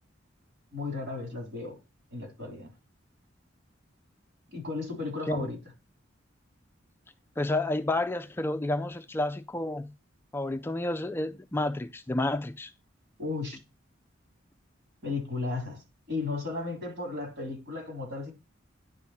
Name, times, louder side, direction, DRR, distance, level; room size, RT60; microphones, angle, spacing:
voice 1, 0.7-1.8 2.1-2.7 4.5-5.6 13.2-13.6 15.0-15.8 16.1-18.3, left 3 dB, 60° right, 3.2 m, -34 dB
voice 2, 7.4-9.9 10.3-12.7, left 2 dB, 10° left, 0.3 m, -30 dB
10.5 x 3.6 x 4.1 m
head